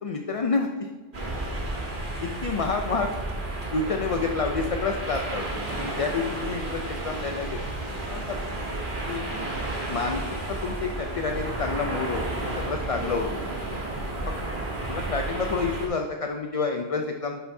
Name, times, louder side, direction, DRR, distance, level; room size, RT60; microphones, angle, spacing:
voice 1, 0.0-0.9 2.2-3.1 3.7-5.5 5.8-7.6 8.1-8.4 9.1-9.2 9.9-10.2 10.5-12.3 12.6-13.3 14.9-17.4, left 4 dB, 45° left, 4 dB, 0.5 m, -28 dB
sound 1, 1.1-15.9, right 2 dB, 55° right, 1.5 m, -32 dB
voice 2, 9.3-9.8 12.9-14.5, equal, ahead, -1 dB, 1.1 m, -45 dB
11.5 x 5.7 x 2.7 m, 1.3 s
omnidirectional pair, 1.1 m